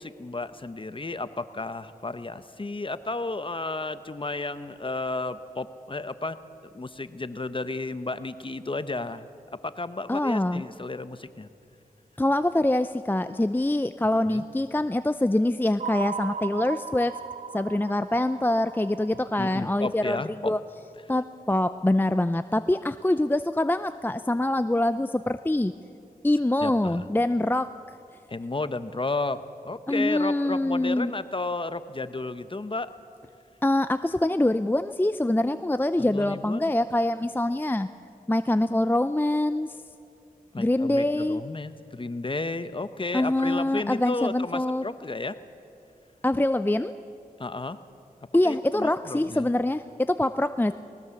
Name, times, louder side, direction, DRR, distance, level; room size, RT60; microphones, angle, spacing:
voice 1, 0.0-6.4 6.7-9.3 9.6-11.5 14.2-14.5 19.4-20.5 26.6-27.0 28.3-32.9 36.0-36.7 40.5-45.4 47.4-47.8 48.4-49.5, left 3 dB, 35° left, 12 dB, 0.9 m, -33 dB
voice 2, 10.1-10.6 12.2-17.1 17.5-20.2 20.4-20.6 21.1-25.7 26.2-27.7 29.9-31.1 33.6-37.9 38.3-39.8 40.6-41.4 43.1-44.8 46.2-46.9 48.3-50.7, left 1 dB, 15° left, 11 dB, 0.5 m, -24 dB
sound 1, 15.8-20.0, right 6 dB, 50° right, 0.6 m, -37 dB
19.0 x 19.0 x 7.1 m, 2.5 s
cardioid pair, 50°, 15 cm